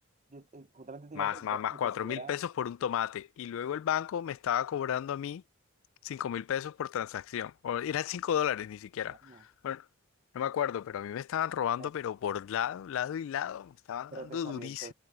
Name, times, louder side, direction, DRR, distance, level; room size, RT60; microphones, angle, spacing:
voice 1, 0.3-2.4 9.1-9.4 11.8-11.9 14.1-14.9, right 3 dB, 35° right, 0.9 m, -45 dB
voice 2, 1.1-5.4 6.0-9.8 10.3-14.9, left 9 dB, 65° left, 0.3 m, -33 dB
head